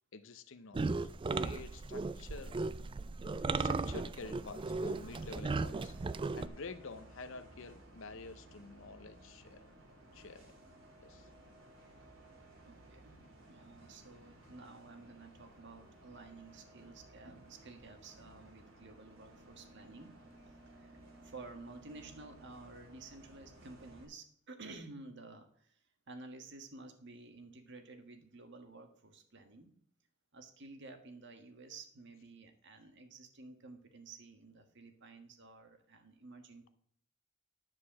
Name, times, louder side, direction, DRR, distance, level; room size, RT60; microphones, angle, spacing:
voice 1, 0.1-1.1 1.4-2.6 3.6-6.0 6.3-9.8 10.1-10.5 11.0-11.3, left 4 dB, 70° left, 10 dB, 0.7 m, -49 dB
sound 1, 0.7-6.5, right 3 dB, 25° right, 0.3 m, -36 dB
Bus, 4.2-24.0, right 1 dB, 85° right, 2.5 m, -57 dB
voice 2, 12.6-13.2 13.5-20.1 20.4-29.7 30.3-36.7, right 3 dB, 60° right, 6 dB, 1.6 m, -52 dB
10.5 x 4.8 x 7.3 m, 0.64 s
head